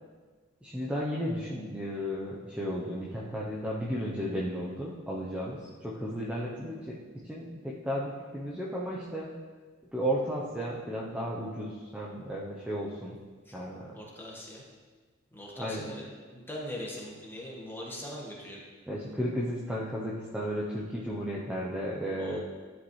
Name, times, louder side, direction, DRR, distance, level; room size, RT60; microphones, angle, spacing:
voice 1, 0.6-9.3 9.9-13.2 13.5-13.9 15.6-15.9 18.9-22.4, equal, 5° right, -5 dB, 0.7 m, -34 dB
voice 2, 13.9-14.6 15.3-18.6 22.2-22.4, left 1 dB, 10° left, -4 dB, 1.4 m, -41 dB
11.5 x 5.1 x 3.2 m, 1.4 s
head